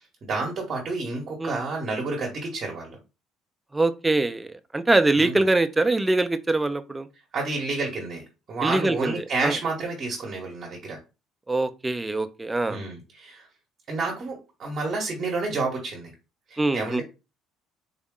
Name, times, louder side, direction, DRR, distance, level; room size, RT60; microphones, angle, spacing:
voice 1, 0.3-3.0 5.2-5.3 7.3-11.0 12.7-13.5 13.9-16.1 16.5-17.0, right 3 dB, 40° right, 1.0 m, -30 dB
voice 2, 3.7-4.5 4.7-7.1 8.6-9.6 11.5-12.8 16.6-17.0, right 2 dB, 10° right, 0.4 m, -23 dB
3.9 x 2.1 x 3.6 m
cardioid pair, 145°, 0 cm